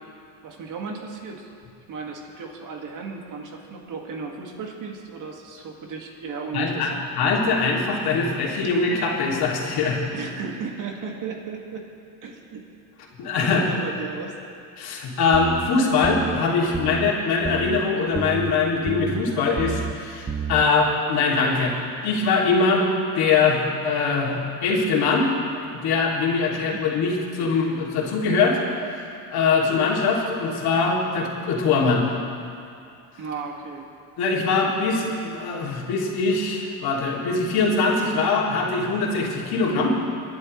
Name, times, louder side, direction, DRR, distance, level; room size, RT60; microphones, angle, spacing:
voice 1, 0.4-1.5 1.9-7.0 10.1-11.9 12.2-12.6 13.4-14.4 16.6-16.7 26.5-26.9 33.2-33.9, right 5 dB, 45° right, 1 dB, 2.0 m, -35 dB
voice 2, 6.5-10.0 13.2-13.6 14.8-21.7 22.0-22.9 23.1-25.3 25.8-28.6 28.9-32.1 34.2-40.0, left 4 dB, 60° left, -3 dB, 2.8 m, -22 dB
sound 1, 15.3-15.7 16.0-16.4 16.7-17.1 17.4-17.8 18.1-18.5 18.9-19.2 19.6-19.9 20.3-20.6, right 6 dB, 15° right, 0.5 m, -29 dB
23.5 x 11.0 x 3.2 m, 2.5 s
supercardioid pair, 115°, 42 cm